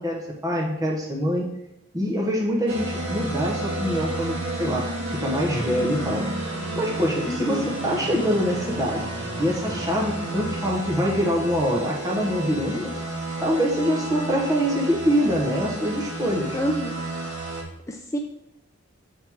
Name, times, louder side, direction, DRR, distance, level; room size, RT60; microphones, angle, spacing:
voice 1, 0.0-1.5 1.9-6.3 6.7-9.1 9.4-12.9 13.4-16.6, equal, 20° right, -3 dB, 1.0 m, -24 dB
sound 1, 2.7-17.6, right 2 dB, 60° right, 1.9 m, -31 dB
voice 2, 7.2-7.7 16.5-17.0 17.9-18.2, equal, 15° left, 1 dB, 0.5 m, -28 dB
7.7 x 3.5 x 4.5 m, 0.81 s
head